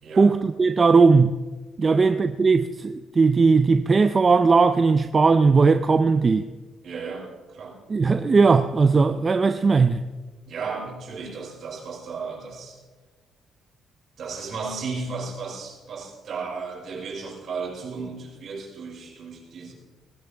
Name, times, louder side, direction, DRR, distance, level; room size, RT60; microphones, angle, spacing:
voice 1, 0.2-1.4 1.8-6.5 7.9-10.0, right 4 dB, 35° right, 0.5 m, -18 dB
voice 2, 6.8-7.8 10.5-12.8 14.2-19.7, right 4 dB, 60° right, 5.9 m, -34 dB
19.5 x 17.0 x 3.5 m
cardioid pair, 90°, 0 cm